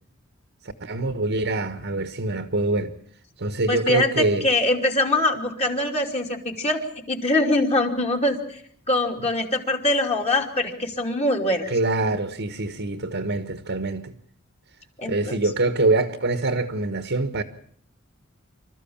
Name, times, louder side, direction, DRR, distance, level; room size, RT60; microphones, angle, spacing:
voice 1, 0.8-2.9 3.4-4.5 11.7-14.1 15.1-17.4, right 2 dB, 60° right, 1.4 m, -24 dB
voice 2, 3.7-8.6 8.9-11.7 15.0-15.4, left 1 dB, 30° left, 2.9 m, -23 dB
26.0 x 14.0 x 8.7 m
head